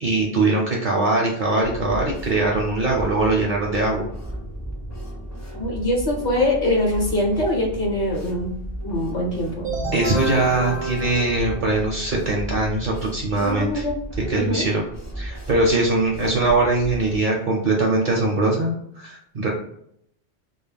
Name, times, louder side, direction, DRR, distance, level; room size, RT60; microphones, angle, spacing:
voice 1, 0.0-4.1 9.9-13.8 14.3-14.8 15.2-19.5, right 2 dB, 55° right, -2 dB, 0.6 m, -21 dB
sound 1, 1.6-17.2, equal, 20° left, 0.4 m, -34 dB
voice 2, 5.5-8.6 8.8-9.7 13.4-13.9 14.3-14.7, left 1 dB, 50° left, -1 dB, 0.7 m, -23 dB
sound 2, 9.6-12.3, right 3 dB, 80° right, 0.9 m, -30 dB
2.3 x 2.0 x 3.3 m, 0.69 s
omnidirectional pair, 1.2 m